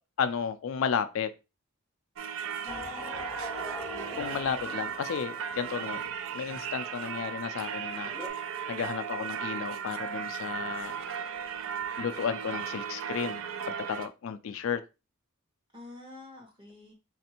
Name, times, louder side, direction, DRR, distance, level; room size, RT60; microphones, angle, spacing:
voice 1, 0.2-1.3 4.1-11.0 12.0-13.4 13.7-14.8, left 7 dB, 65° left, 0.3 m, -33 dB
Singing / Church bell, 2.2-14.1, right 7 dB, 65° right, 0.4 m, -36 dB
voice 2, 2.6-3.1 3.9-4.4 15.7-16.9, left 2 dB, 20° right, 1.0 m, -49 dB
sound 1, 2.7-7.1 7.5-7.6 7.8-8.3, equal, 10° left, 0.6 m, -42 dB
4.0 x 2.6 x 2.8 m
head